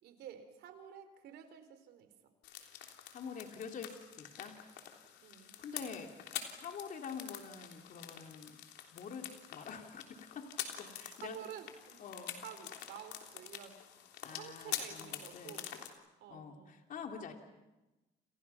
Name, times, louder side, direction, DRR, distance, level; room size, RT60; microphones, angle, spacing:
voice 1, 0.0-2.1 5.2-5.5 11.1-12.1 12.4-13.8 14.3-15.7 16.2-16.8, right 9 dB, 75° right, 9 dB, 4.1 m, -50 dB
sound 1, 2.4-15.9, left 10 dB, 85° left, 3.4 m, -46 dB
voice 2, 3.1-4.6 5.6-6.1 6.5-8.6 8.9-11.4 12.0-12.4 14.2-15.6 16.3-17.3, left 6 dB, 50° left, 4 dB, 3.3 m, -46 dB
29.5 x 29.0 x 5.9 m, 1.0 s
cardioid pair, 110°, 17 cm